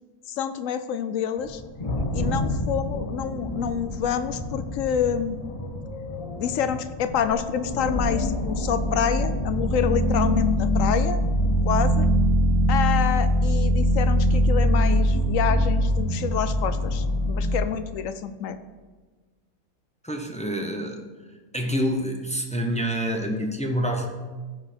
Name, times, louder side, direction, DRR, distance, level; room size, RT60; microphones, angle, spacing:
voice 1, 0.3-1.6 2.1-5.5 6.4-11.2 11.6-12.1 12.7-18.6, left 8 dB, 65° left, 11 dB, 0.9 m, -27 dB
sound 1, 1.4-17.6, equal, 25° left, 1.0 m, -24 dB
voice 2, 20.0-21.0 21.5-24.1, equal, 5° left, 2 dB, 0.6 m, -27 dB
15.0 x 5.2 x 4.4 m, 1.3 s
omnidirectional pair, 1.7 m